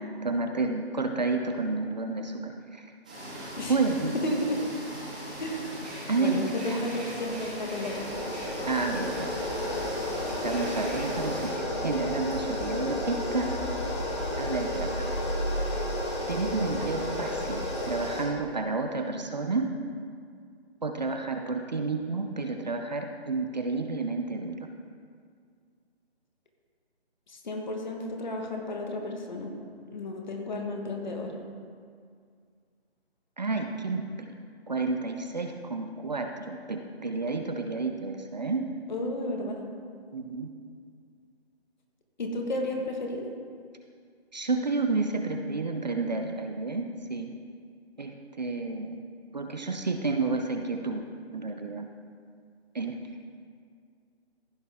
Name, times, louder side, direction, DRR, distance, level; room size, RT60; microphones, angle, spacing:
voice 1, 0.2-2.9 3.7-4.1 6.1-6.8 8.7-9.3 10.4-13.6 14.4-15.2 16.3-19.7 20.8-24.7 33.4-34.3 34.7-38.7 40.1-40.5 44.3-47.3 48.0-49.0 49.3-51.0 51.3-51.9 52.7-53.0, right 3 dB, 40° right, 4 dB, 0.6 m, -30 dB
sound 1, 3.0-11.5, equal, 5° right, 0.8 m, -39 dB
voice 2, 4.2-4.6 5.4-8.2 27.3-29.5 29.9-31.3 38.9-39.7 42.2-43.3, left 1 dB, 45° left, 2 dB, 1.6 m, -33 dB
sound 2, 6.9-18.2, left 1 dB, 25° left, 1.8 m, -32 dB
15.5 x 6.4 x 3.6 m, 2.2 s
hypercardioid pair, 170°, 32 cm